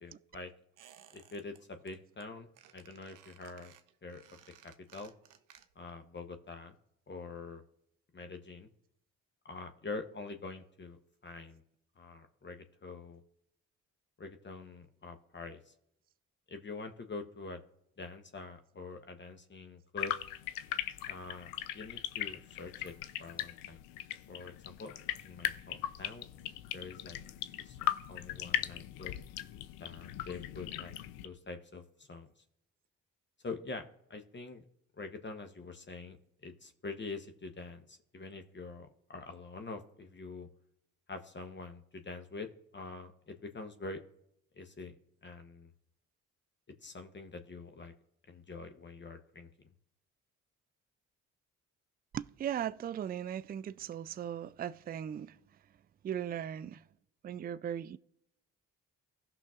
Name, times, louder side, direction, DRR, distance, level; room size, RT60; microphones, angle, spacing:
voice 1, 0.0-0.5 1.1-3.7 4.0-4.3 4.6-5.1 5.8-6.8 7.1-7.6 8.1-8.7 9.4-11.6 12.0-13.2 14.2-15.7 16.5-17.6 18.0-20.1 21.1-22.9 23.2-23.8 24.3-25.0 25.2-26.3 26.7-27.2 27.6-27.8 28.1-29.2 29.8-31.0 31.2-32.3 33.4-34.6 35.0-36.2 36.4-40.5 41.1-44.0 44.5-44.9 45.2-45.7 46.8-47.9 48.3-49.5, left 3 dB, 35° left, 1.0 m, -45 dB
Squeak, 0.8-1.6 1.9-2.2 2.5-6.0 6.2-6.3, right 9 dB, 65° right, 0.8 m, -59 dB
sound 1, 20.0-31.3, left 13 dB, 90° left, 0.5 m, -39 dB
voice 2, 52.1-55.4 56.0-56.8 57.2-58.0, right 9 dB, 30° right, 0.3 m, -38 dB
16.5 x 5.8 x 2.5 m
supercardioid pair, 55°, 33 cm